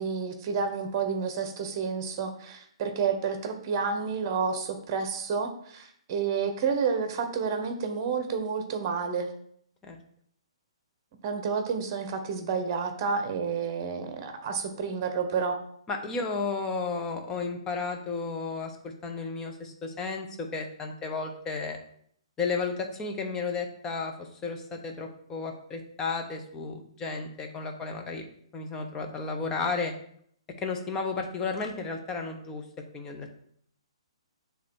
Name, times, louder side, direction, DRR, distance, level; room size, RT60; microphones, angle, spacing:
voice 1, 0.0-9.3 11.2-15.6, right 5 dB, 35° right, 7 dB, 1.0 m, -30 dB
voice 2, 15.9-21.8 22.4-28.2 28.5-29.9 30.6-32.6 32.9-33.3, left 4 dB, 15° left, 3 dB, 0.9 m, -33 dB
7.2 x 3.4 x 4.6 m, 0.65 s
figure-of-eight pair, 125°, 3 cm